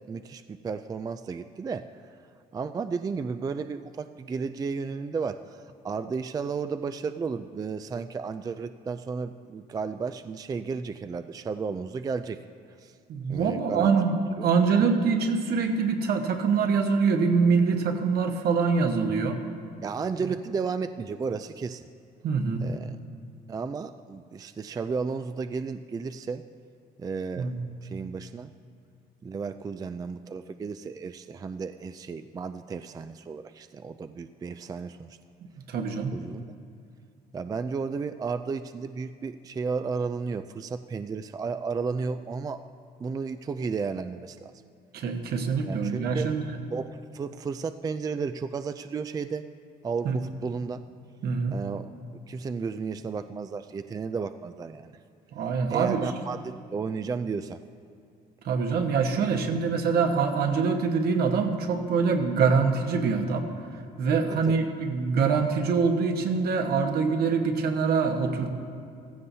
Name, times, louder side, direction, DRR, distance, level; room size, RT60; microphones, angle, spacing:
voice 1, 0.1-1.9 2.5-12.4 12.8-13.0 13.3-13.9 14.4-14.5 19.1-19.3 19.8-21.9 22.6-23.0 23.5-26.4 27.0-28.5 29.2-35.2 36.1-36.4 37.3-42.6 43.0-44.5 45.6-46.3 46.7-49.4 49.8-50.8 51.5-51.9 52.3-55.0 55.7-57.6 64.3-64.6, right 5 dB, 20° right, 10 dB, 0.3 m, -33 dB
voice 2, 13.1-19.4 22.2-22.7 27.4-27.6 35.7-36.1 44.9-46.4 50.0-50.2 51.2-51.5 55.3-56.0 58.4-63.4 64.0-68.5, right 5 dB, 65° right, 4 dB, 1.4 m, -24 dB
15.0 x 15.0 x 2.8 m, 2.3 s
cardioid pair, 110°, 17 cm